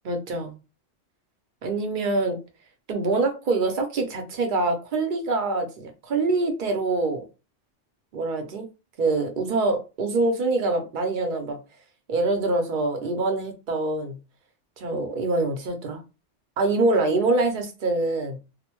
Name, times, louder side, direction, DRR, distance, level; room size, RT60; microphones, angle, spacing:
voice 1, 0.0-0.6 1.6-2.4 2.9-7.2 8.1-8.7 9.0-11.6 12.1-14.2 14.8-16.0 16.6-18.4, right 3 dB, 50° right, 0.7 m, -25 dB
2.5 x 2.1 x 2.9 m
omnidirectional pair, 1.2 m